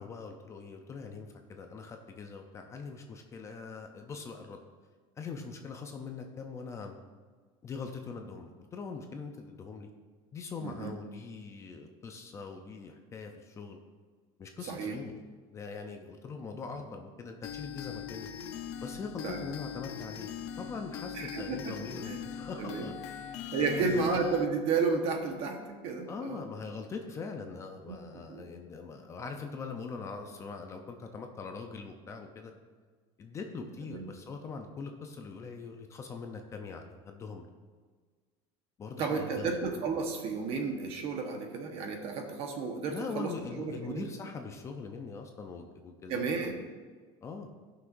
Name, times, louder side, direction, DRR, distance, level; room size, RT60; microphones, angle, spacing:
voice 1, 0.0-4.6 5.2-7.0 7.6-9.9 10.3-13.8 14.4-15.1 15.5-18.3 18.8-20.3 20.6-24.1 26.1-32.5 33.2-37.5 38.8-39.5 42.9-46.5 47.2-47.5, left 4 dB, 20° left, 4 dB, 0.5 m, -42 dB
voice 2, 10.6-10.9 14.7-15.0 19.2-19.4 21.1-21.8 22.1-22.2 22.6-22.9 23.5-26.4 27.9-28.0 28.3-28.4 33.9-34.1 39.0-43.3 43.6-44.1 46.1-46.6, right 4 dB, 45° right, 3 dB, 1.2 m, -32 dB
sound 1, 17.4-24.5, left 9 dB, 80° left, 0.7 m, -41 dB
16.0 x 5.9 x 2.6 m, 1.5 s
cardioid pair, 165°, 14 cm